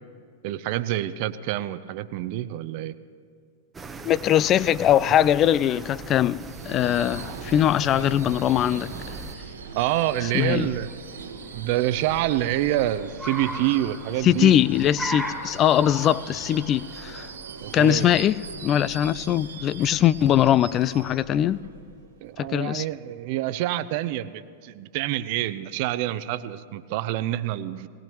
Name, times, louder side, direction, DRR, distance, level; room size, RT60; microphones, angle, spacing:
voice 1, 0.4-2.9 9.7-10.9 11.5-14.5 17.6-18.1 22.2-27.9, right 14 dB, 55° right, 0.7 m, -27 dB
sound 1, 3.7-9.3, right 4 dB, 15° right, 0.9 m, -39 dB
voice 2, 4.0-8.9 10.3-10.7 14.2-17.3 17.7-21.6 22.4-22.8, left 11 dB, 35° left, 0.4 m, -21 dB
Subway metro underground / Screech, 6.4-22.3, right 5 dB, 85° right, 1.3 m, -41 dB
Car, 10.6-19.9, right 1 dB, ahead, 2.3 m, -39 dB
20.0 x 19.0 x 3.1 m
hypercardioid pair, 105°, 0 cm